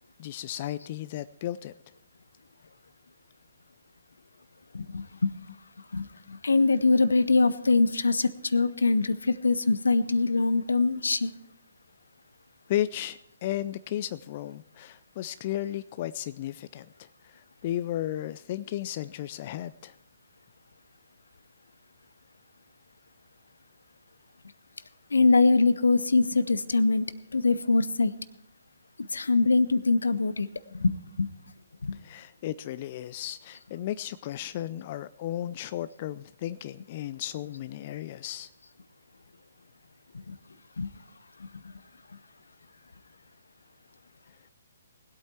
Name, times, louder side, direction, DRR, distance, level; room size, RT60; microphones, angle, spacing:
voice 1, 0.2-1.7 12.7-19.9 32.0-38.5, left 12 dB, 40° left, 15 dB, 0.4 m, -34 dB
voice 2, 4.7-5.3 5.9-11.3 25.1-27.1 27.3-28.1 29.1-31.3 31.8-32.0 40.3-40.4 40.8-40.9, left 3 dB, 75° left, 17 dB, 0.7 m, -23 dB
20.0 x 8.5 x 4.4 m, 0.80 s
figure-of-eight pair, 135°, 0 cm